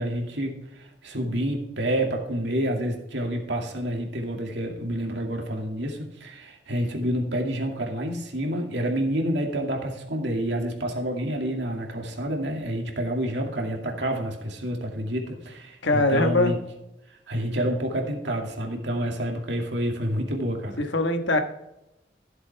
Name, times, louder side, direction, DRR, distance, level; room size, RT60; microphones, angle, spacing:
voice 1, 0.0-16.6 17.3-20.8, right 1 dB, 70° right, 1 dB, 2.3 m, -28 dB
voice 2, 15.8-16.5 20.8-21.4, left 2 dB, 80° left, 6 dB, 1.4 m, -22 dB
14.5 x 7.7 x 3.4 m, 0.90 s
head